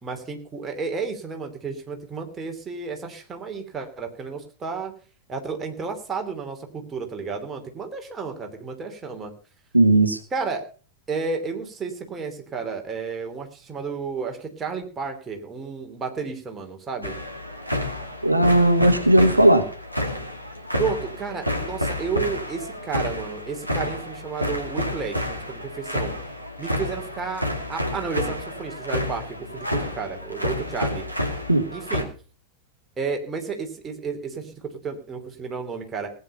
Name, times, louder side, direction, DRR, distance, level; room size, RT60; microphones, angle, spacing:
voice 1, 0.0-4.9 5.3-9.3 10.3-10.6 11.1-17.2 20.8-26.1 26.6-31.0 31.7-32.1 33.0-36.1, right 5 dB, 20° right, 3 dB, 3.0 m, -32 dB
voice 2, 9.7-10.2 18.2-19.6 31.5-31.6, right 1 dB, 85° right, 7 dB, 1.2 m, -16 dB
sound 1, 17.0-32.0, left 1 dB, 90° left, 2.4 m, -30 dB
18.0 x 9.0 x 5.5 m, 0.38 s
figure-of-eight pair, 90°, 0 cm